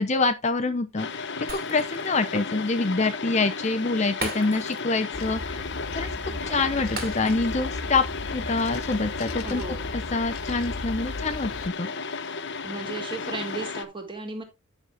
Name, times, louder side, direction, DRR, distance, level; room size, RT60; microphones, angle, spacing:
voice 1, 0.0-5.7 5.9-6.1 6.4-8.0 8.3-9.6 10.1-11.9, left 3 dB, 30° left, 0.6 m, -26 dB
sound 1, 1.0-13.8, left 4 dB, 50° left, 0.9 m, -34 dB
Shatter, 1.5-2.2 2.5-2.7 4.2-5.0 5.3-5.4 7.0-7.7 8.0-8.2, right 4 dB, 45° right, 2.5 m, -37 dB
sound 2, 5.1-11.7, left 2 dB, 75° left, 1.4 m, -36 dB
voice 2, 6.2-6.6 9.4-9.9 12.6-14.4, right 3 dB, 20° right, 2.4 m, -35 dB
10.0 x 6.5 x 3.4 m
head